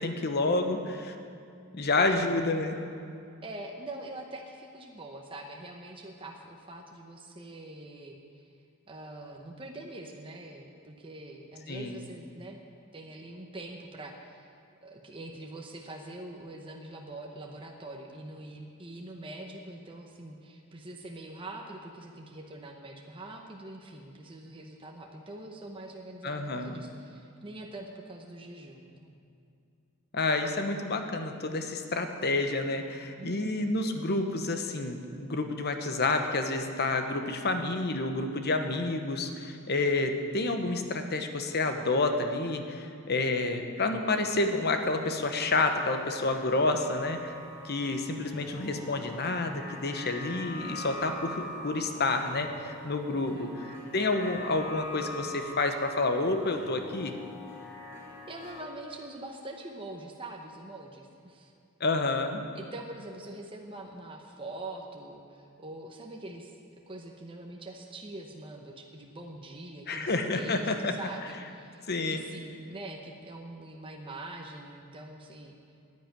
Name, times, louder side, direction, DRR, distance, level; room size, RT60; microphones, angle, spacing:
voice 1, 0.0-1.1 1.7-2.8 11.7-12.0 26.2-26.8 30.1-47.3 47.6-53.7 53.9-57.1 61.8-62.4 69.9-70.9 71.9-72.2, left 2 dB, 45° left, 6 dB, 1.0 m, -29 dB
voice 2, 1.3-1.6 2.0-2.2 3.4-8.5 8.9-12.6 12.9-14.5 14.8-29.2 33.2-33.6 53.1-53.5 58.3-61.5 62.5-66.5 66.9-75.6, right 2 dB, 25° right, 1 dB, 0.9 m, -44 dB
sound 1, 44.2-58.6, left 1 dB, 10° left, 3.1 m, -44 dB
9.9 x 9.5 x 9.0 m, 2.5 s
head